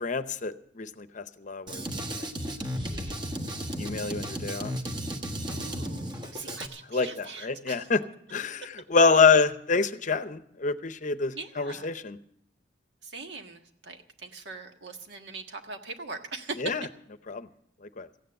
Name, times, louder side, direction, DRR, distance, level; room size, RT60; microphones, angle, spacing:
voice 1, 0.0-2.2 2.9-3.1 3.8-4.7 6.5-6.6 6.9-8.0 8.3-12.2 16.6-16.8 17.3-17.5 18.0-18.1, left 4 dB, 45° left, 12 dB, 0.7 m, -26 dB
Drum kit, 1.7-6.7, equal, 25° right, 1.3 m, -34 dB
voice 2, 5.5-7.9 11.3-11.9 13.0-16.7, right 3 dB, 75° right, 5 dB, 1.6 m, -41 dB
15.0 x 9.5 x 7.6 m, 0.70 s
head